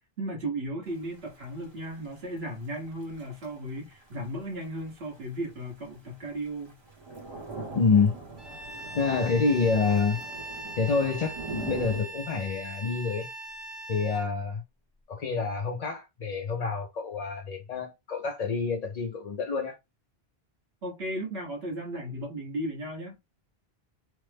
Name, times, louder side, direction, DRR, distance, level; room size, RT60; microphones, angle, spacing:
voice 1, 0.2-6.8 20.8-23.2, right 1 dB, 80° right, 1.5 m, -35 dB
Thunder / Rain, 0.9-12.0, right 3 dB, 30° right, 0.7 m, -43 dB
voice 2, 7.7-8.1 8.9-10.2 10.8-13.3 13.9-14.6 15.1-19.8, left 5 dB, 50° left, 0.5 m, -27 dB
Bowed string instrument, 8.4-14.3, right 2 dB, 45° right, 0.3 m, -40 dB
3.3 x 2.0 x 3.3 m
omnidirectional pair, 1.0 m